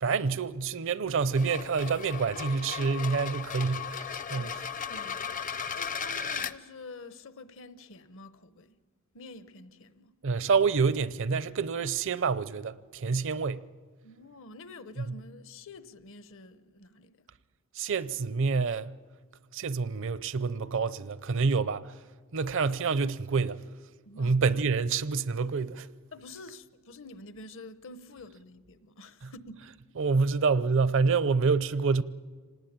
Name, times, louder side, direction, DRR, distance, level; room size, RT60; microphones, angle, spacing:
voice 1, 0.0-4.7 10.2-13.6 15.0-15.2 17.8-18.9 19.5-22.0 22.3-23.6 24.2-25.9 29.2-29.3 30.0-32.0, right 4 dB, 60° right, 0.6 m, -27 dB
sound 1, 1.2-6.5, left 7 dB, 40° left, 0.6 m, -36 dB
voice 2, 4.4-8.8 9.1-10.1 14.0-17.2 24.1-24.4 26.1-29.6, left 2 dB, 65° left, 0.9 m, -48 dB
26.0 x 19.0 x 8.7 m
head